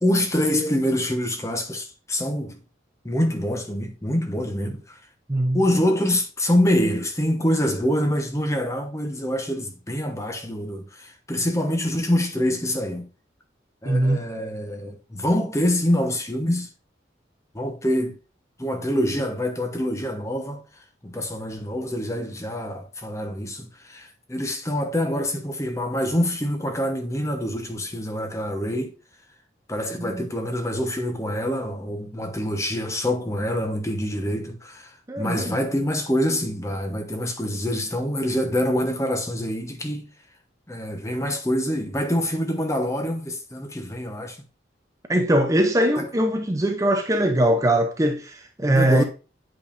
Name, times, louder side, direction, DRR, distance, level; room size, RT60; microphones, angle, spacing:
voice 1, 0.0-2.6 3.0-5.0 5.5-13.1 13.8-16.7 17.5-18.2 18.6-20.6 21.0-28.9 29.7-40.1 40.7-44.4 46.0-46.1 48.7-49.0, equal, 15° left, 1.0 m, -25 dB
voice 2, 5.3-5.6 13.9-14.2 30.0-30.2 35.1-35.6 45.1-49.0, right 1 dB, 15° right, 0.6 m, -21 dB
8.1 x 5.1 x 2.5 m
head